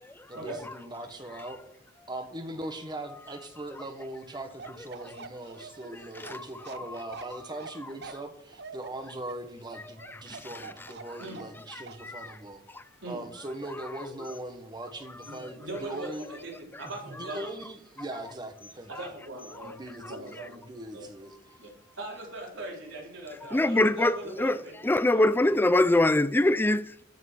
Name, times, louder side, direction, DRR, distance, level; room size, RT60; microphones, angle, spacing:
voice 1, 0.3-1.6 2.1-12.6 13.1-16.3 17.0-18.9 19.6-21.6, right 1 dB, 25° right, 1.4 m, -40 dB
Bark, 4.6-11.6 11.9-12.1, right 4 dB, 60° right, 0.8 m, -45 dB
voice 2, 15.3-17.5 18.9-19.7 20.0-20.6 20.9-21.1 21.6-24.7 25.1-25.3, right 2 dB, 90° right, 4.0 m, -40 dB
voice 3, 23.5-24.6 24.8-27.0, left 1 dB, 10° left, 0.4 m, -23 dB
13.5 x 6.2 x 6.1 m
head